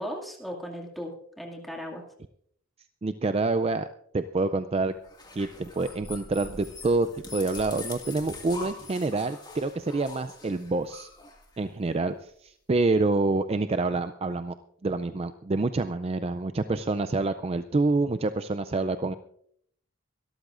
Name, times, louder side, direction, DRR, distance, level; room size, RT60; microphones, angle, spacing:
voice 1, 0.0-2.0, equal, ahead, -1 dB, 2.3 m, -37 dB
voice 2, 3.0-3.9 4.1-4.9 5.3-11.1 11.6-14.5 14.8-19.1, right 3 dB, 30° right, 10 dB, 0.4 m, -27 dB
dog small whimper +run, 5.0-12.0, left 4 dB, 20° left, 2.0 m, -43 dB
24.0 x 13.0 x 2.5 m, 0.67 s
head